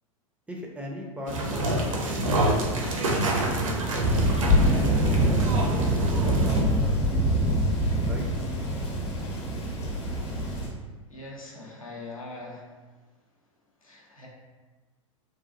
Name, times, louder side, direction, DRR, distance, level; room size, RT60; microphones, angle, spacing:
voice 1, 0.5-2.8 4.1-6.9 8.0-8.3, left 1 dB, 5° right, -1 dB, 0.3 m, -39 dB
sound 1, 1.3-6.6, right 1 dB, 75° right, 0.6 m, -27 dB
Thunder, 4.0-10.7, equal, 50° left, 0.7 m, -24 dB
voice 2, 11.1-12.7 13.8-14.3, left 2 dB, 85° left, -2 dB, 0.6 m, -42 dB
2.9 x 2.4 x 2.4 m, 1.3 s
figure-of-eight pair, 90°, 17 cm